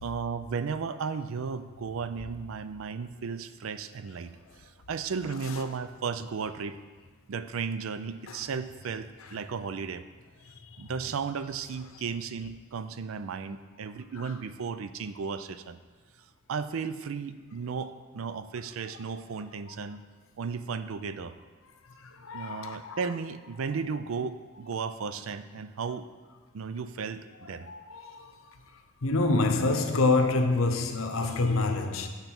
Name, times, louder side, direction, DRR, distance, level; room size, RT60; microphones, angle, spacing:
voice 1, 0.0-6.8 7.3-10.0 10.8-15.8 16.5-20.0 20.4-21.3 22.3-26.1 26.5-27.7, right 5 dB, 85° right, 0.4 m, -35 dB
voice 2, 22.0-23.0 27.7-28.3 29.0-32.1, left 3 dB, 90° left, 0.7 m, -26 dB
8.9 x 4.0 x 5.9 m
head